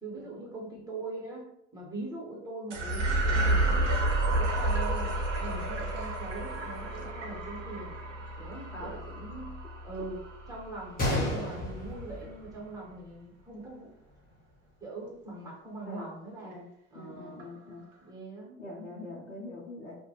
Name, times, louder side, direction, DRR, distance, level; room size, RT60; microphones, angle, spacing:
voice 1, 0.0-4.0 4.3-7.9 8.4-9.5 9.8-10.2 10.5-13.9 14.8-16.5 16.9-17.5 18.0-18.6, right 2 dB, 10° right, -4 dB, 1.2 m, -42 dB
sound 1, 2.7-11.3, right 1 dB, 85° right, 0.6 m, -30 dB
sound 2, 3.2-10.1 10.8-10.9 11.5-11.6 12.2-12.3 13.6-13.7 16.5-16.6 17.4-18.1, right 2 dB, 45° right, 0.7 m, -43 dB
voice 2, 8.7-9.0 15.8-16.1 16.4-16.6 16.9-17.8 18.6-20.0, left 2 dB, 90° left, -5 dB, 0.6 m, -43 dB
Gunshot gunfire, 11.0-13.0 13.3-13.4 14.1-14.3, left 1 dB, 25° left, 1.0 m, -32 dB
2.4 x 2.1 x 2.9 m, 0.79 s
figure-of-eight pair, 65°, 35 cm